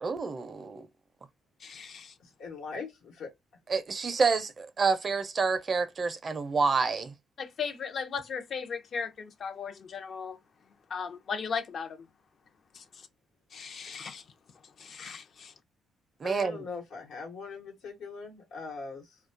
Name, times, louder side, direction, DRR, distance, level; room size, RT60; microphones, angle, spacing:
voice 1, 0.0-0.8 3.7-7.1 16.2-16.6, right 4 dB, 40° right, 0.4 m, -28 dB
voice 2, 1.6-2.1 7.4-10.4 10.9-12.0 12.7-12.8 13.5-14.2 14.8-15.5, left 6 dB, 55° left, 0.5 m, -37 dB
voice 3, 2.2-3.3 16.2-19.2, left 4 dB, 85° left, 1.1 m, -41 dB
2.3 x 2.2 x 2.5 m
cardioid pair, 90°, 0 cm